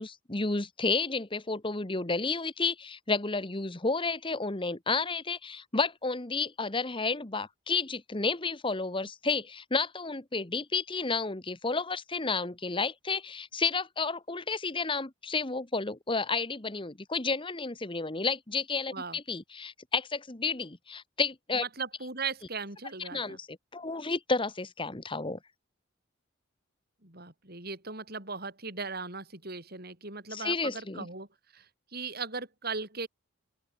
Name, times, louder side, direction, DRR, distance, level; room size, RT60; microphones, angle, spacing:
voice 1, 0.0-21.6 23.1-25.4 30.3-31.1, left 4 dB, 25° left, 1.3 m, -31 dB
voice 2, 21.6-23.4 27.0-31.3 31.5-31.7 31.9-33.1, right 4 dB, 50° right, 7.0 m, -38 dB
open air
head